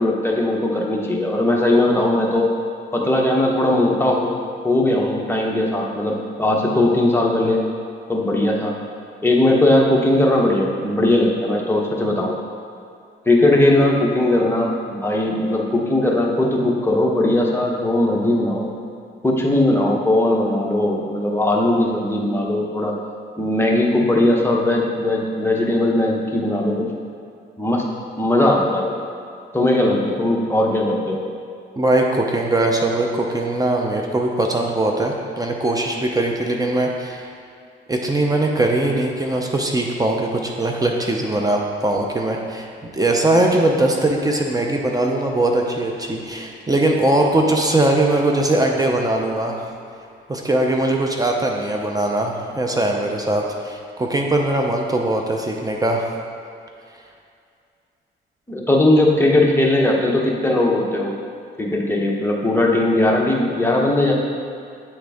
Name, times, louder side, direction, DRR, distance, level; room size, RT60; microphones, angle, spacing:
voice 1, 0.0-2.5 2.9-4.3 4.6-7.6 8.1-8.7 9.2-12.3 13.3-18.7 19.2-22.9 23.4-26.9 27.6-27.8 28.2-29.0 29.5-31.2 58.5-61.1 61.6-64.1, left 1 dB, 10° left, -1 dB, 0.9 m, -19 dB
voice 2, 31.8-37.3 37.9-49.7 50.3-56.1, right 1 dB, 20° right, 1 dB, 0.7 m, -20 dB
8.5 x 3.7 x 3.5 m, 2.4 s
cardioid pair, 90°, 20 cm